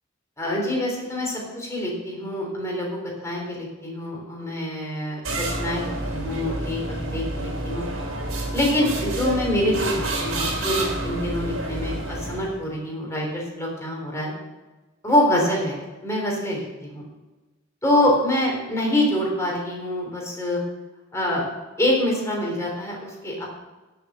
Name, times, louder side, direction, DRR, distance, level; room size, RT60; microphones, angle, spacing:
voice 1, 0.4-7.8 8.5-14.3 15.0-17.0 17.8-20.6 21.1-21.4 21.8-23.5, left 1 dB, 15° left, -2 dB, 3.6 m, -25 dB
sound 1, 5.2-12.6, right 2 dB, 85° right, 3.0 m, -29 dB
11.0 x 6.7 x 7.7 m, 1.2 s
head